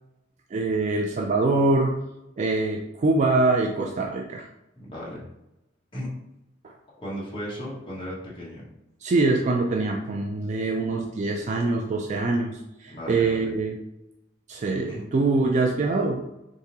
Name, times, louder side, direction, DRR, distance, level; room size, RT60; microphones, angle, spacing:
voice 1, 0.5-1.9 2.4-4.5 6.6-6.7 9.0-13.8 14.5-16.2, right 3 dB, 40° right, 2 dB, 0.3 m, -24 dB
voice 2, 4.8-5.2 5.9-6.1 7.0-8.6 12.9-13.4 14.9-15.0, equal, 25° left, -6 dB, 1.1 m, -35 dB
3.8 x 3.5 x 2.8 m, 0.90 s
head